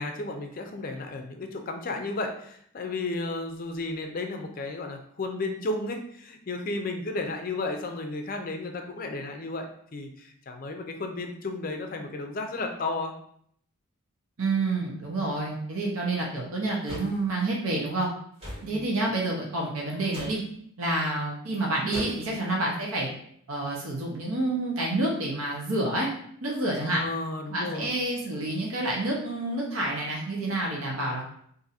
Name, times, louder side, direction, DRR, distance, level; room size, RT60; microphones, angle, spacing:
voice 1, 0.0-13.1 18.6-18.9 26.8-27.9, left 2 dB, 40° left, 4 dB, 0.4 m, -33 dB
voice 2, 14.4-18.1 18.6-20.4 20.8-23.1 23.5-26.1 26.4-27.0 27.5-31.2, right 2 dB, 80° right, -2 dB, 0.7 m, -28 dB
sound 1, 16.8-17.2 18.4-18.7 20.1-20.4 21.9-22.3, equal, 30° right, 1.3 m, -37 dB
2.6 x 2.5 x 4.1 m, 0.66 s
head